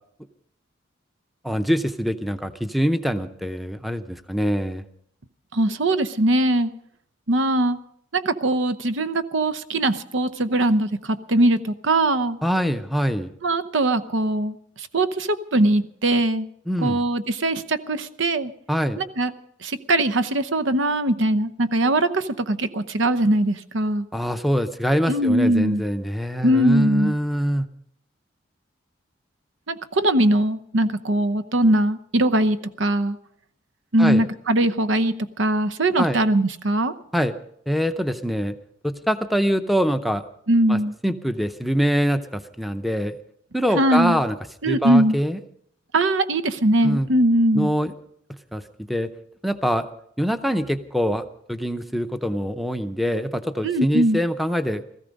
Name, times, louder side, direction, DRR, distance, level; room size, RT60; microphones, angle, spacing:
voice 1, 1.4-4.8 12.4-13.3 16.7-17.0 18.7-19.0 24.1-27.7 34.0-34.2 36.0-36.2 37.1-37.3 37.7-38.6 38.8-40.2 40.7-43.2 43.5-44.4 44.6-45.4 46.8-47.1 47.5-48.0 48.5-48.6 48.9-49.1 49.4-49.9 50.2-51.2 51.5-54.8, equal, ahead, 9 dB, 0.6 m, -24 dB
voice 2, 5.5-6.7 7.3-7.8 8.1-12.4 13.4-16.5 16.8-18.5 19.0-19.3 19.6-24.1 25.1-25.8 26.4-27.2 29.7-33.2 33.9-36.9 40.5-40.9 43.8-44.2 44.6-45.2 45.9-47.7 53.6-54.2, right 1 dB, 80° right, 10 dB, 0.9 m, -21 dB
17.5 x 14.5 x 5.3 m, 0.68 s
head